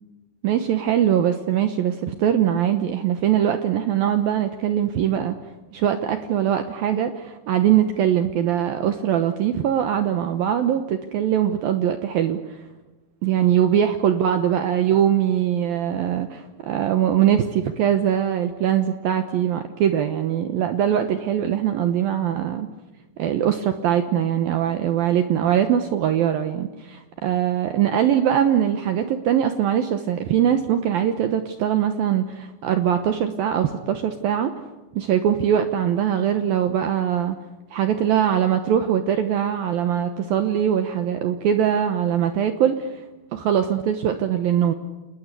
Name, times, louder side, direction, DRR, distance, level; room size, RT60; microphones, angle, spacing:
voice 1, 0.4-5.4 5.7-12.4 13.2-22.7 23.2-34.5 35.0-37.4 37.7-43.0 43.3-44.7, right 9 dB, 70° right, 8 dB, 2.4 m, -22 dB
28.5 x 20.5 x 8.4 m, 1.1 s
omnidirectional pair, 5.2 m